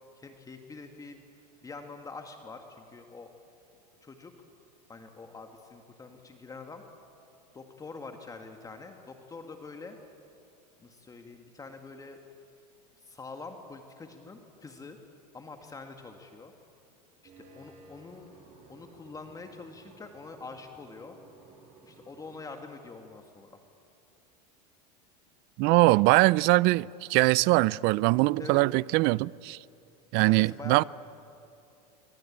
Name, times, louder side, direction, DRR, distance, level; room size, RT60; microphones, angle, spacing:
voice 1, 0.2-1.2 1.6-3.3 4.0-4.3 4.9-6.8 7.5-10.0 10.8-12.2 13.0-15.0 15.3-16.5 17.2-18.4 18.7-21.2 21.8-23.6 28.4-28.6 30.2-30.8, left 4 dB, 15° left, 2.0 m, -45 dB
sound 1, 17.2-22.5, right 3 dB, 35° right, 5.7 m, -55 dB
voice 2, 25.6-29.6 30.1-30.8, right 22 dB, 50° right, 0.5 m, -22 dB
27.0 x 24.5 x 8.8 m
supercardioid pair, 120°, 21 cm